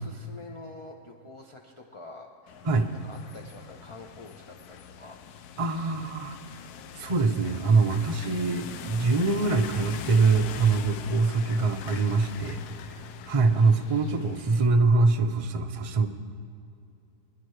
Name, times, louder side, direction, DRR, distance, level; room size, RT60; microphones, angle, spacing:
voice 1, 0.0-2.6 3.0-5.2, left 3 dB, 35° left, 0 dB, 0.5 m, -46 dB
sound 1, 2.5-14.7, left 7 dB, 85° left, 1.1 m, -42 dB
voice 2, 5.6-6.4 7.0-12.6 12.9-16.1, right 3 dB, 50° right, 5 dB, 0.4 m, -24 dB
24.5 x 10.5 x 3.2 m, 2.6 s
omnidirectional pair, 1.6 m